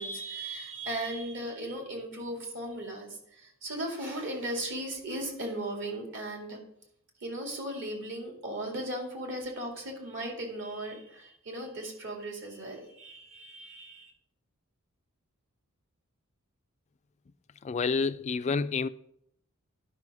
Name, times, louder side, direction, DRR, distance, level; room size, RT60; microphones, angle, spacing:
voice 1, 0.0-6.6 7.2-14.1, right 1 dB, 60° right, 2.3 m, -37 dB
voice 2, 17.6-18.9, left 4 dB, 30° left, 0.3 m, -28 dB
11.0 x 5.6 x 4.9 m
head